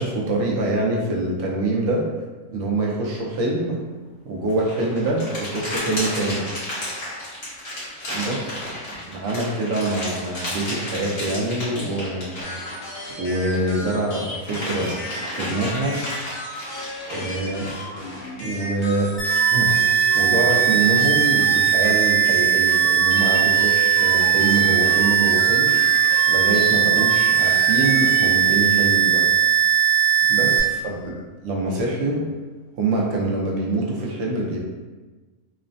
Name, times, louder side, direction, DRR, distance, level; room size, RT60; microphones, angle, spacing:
voice 1, 0.0-2.0 2.5-3.8 4.2-6.4 8.1-8.5 9.2-12.4 13.2-15.0 15.3-16.0 17.1-17.7 18.4-19.1 19.5-19.7 20.1-25.8 26.3-29.3 30.3-31.1 31.4-32.2 32.8-34.6, right 2 dB, 65° right, -3 dB, 0.8 m, -25 dB
sound 1, 4.5-13.7 14.1-18.3, left 1 dB, 45° left, 1.2 m, -32 dB
sound 2, 12.4-28.3, left 1 dB, 75° left, 0.5 m, -35 dB
sound 3, 19.2-30.6, right 11 dB, 10° left, 0.6 m, -18 dB
3.1 x 2.0 x 2.5 m, 1.3 s
omnidirectional pair, 1.6 m